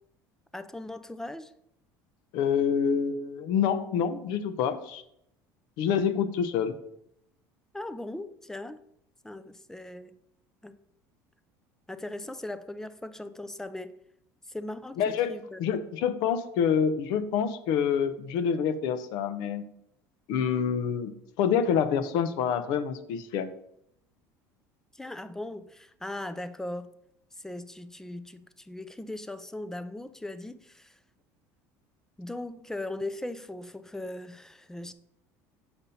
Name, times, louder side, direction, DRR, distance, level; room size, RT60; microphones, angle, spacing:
voice 1, 0.5-1.5 7.7-8.8 9.2-10.2 10.6-10.8 11.9-13.9 14.5-15.7 24.9-26.9 27.3-31.0 32.2-34.9, left 1 dB, 5° left, 12 dB, 0.4 m, -39 dB
voice 2, 2.3-5.0 5.8-6.8 15.0-15.3 15.6-19.7 20.3-23.5, left 7 dB, 70° left, 12 dB, 0.7 m, -27 dB
7.0 x 5.3 x 4.2 m, 0.76 s
cardioid pair, 125°, 8 cm